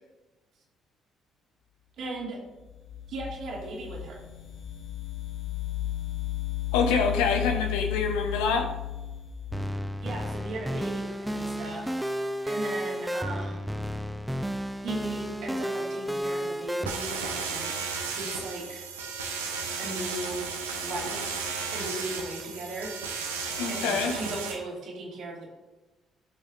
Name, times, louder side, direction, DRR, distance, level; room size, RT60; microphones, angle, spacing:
voice 1, 2.0-2.4 3.1-4.2 10.0-12.2 12.4-13.7 14.8-17.8 18.1-18.8 19.8-20.4 20.8-21.3 21.7-22.9 23.7-25.5, right 2 dB, 60° right, -2 dB, 2.4 m, -37 dB
sound 1, 2.7-10.2, left 15 dB, 55° left, 1.7 m, -34 dB
voice 2, 6.7-8.7 23.6-24.1, left 5 dB, 75° left, 5 dB, 1.0 m, -26 dB
sound 2, 9.5-16.9, equal, 5° right, 0.6 m, -32 dB
sound 3, 16.9-24.5, right 5 dB, 90° right, 0.9 m, -34 dB
14.5 x 5.5 x 2.6 m, 1.1 s
hypercardioid pair, 50°, 0 cm